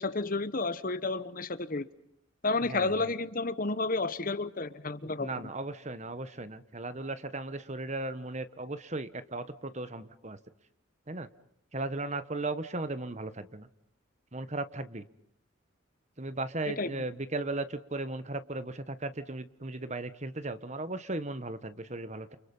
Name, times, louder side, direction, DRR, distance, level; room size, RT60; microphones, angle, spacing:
voice 1, 0.0-1.8 2.4-5.4 16.7-16.9, left 3 dB, 40° left, 1.1 m, -31 dB
voice 2, 2.7-3.1 5.2-10.4 11.1-11.3 11.7-13.7 14.3-15.0 16.2-22.4, right 2 dB, 35° right, 1.3 m, -36 dB
29.5 x 29.0 x 5.5 m
head